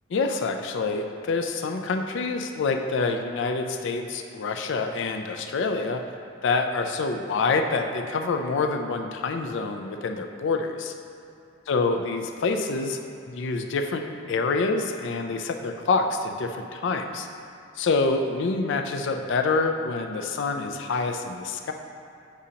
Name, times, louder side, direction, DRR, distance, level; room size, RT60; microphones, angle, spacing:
voice 1, 0.1-6.0 6.4-10.9 11.7-17.3 17.8-21.7, left 3 dB, 65° left, 5 dB, 0.4 m, -27 dB
7.1 x 5.0 x 2.8 m, 2.6 s
head